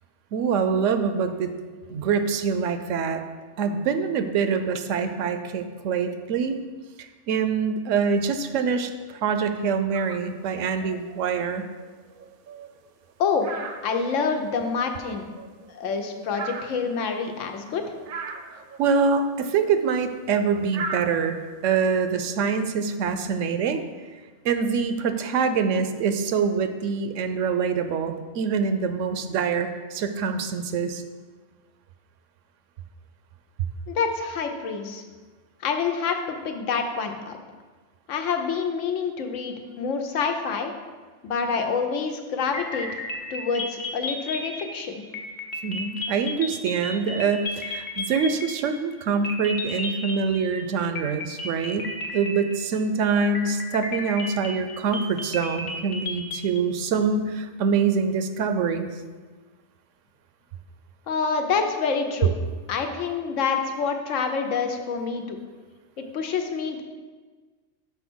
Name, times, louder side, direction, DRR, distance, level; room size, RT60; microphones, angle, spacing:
voice 1, 0.3-1.5 1.9-3.2 3.6-6.6 7.0-11.7 18.5-21.4 21.6-23.8 24.4-31.0 45.6-58.9, right 5 dB, 80° right, 9 dB, 0.9 m, -25 dB
sound 1, 9.9-10.4 10.7-13.1 13.4-14.6 15.0-17.6 18.0-19.0 19.3-22.3, right 4 dB, 55° right, 0.6 m, -39 dB
voice 2, 13.8-15.3 15.7-17.8 33.9-35.0 35.6-37.4 38.1-40.7 41.2-43.0 43.3-45.0 61.1-62.3 62.7-65.4 66.0-66.8, left 5 dB, 85° left, 5 dB, 1.1 m, -27 dB
sound 2, 42.5-48.9 49.2-50.6 51.0-52.8 53.2-56.6, left 2 dB, 65° left, 1.1 m, -33 dB
5.6 x 4.3 x 6.1 m, 1.4 s
omnidirectional pair, 1.3 m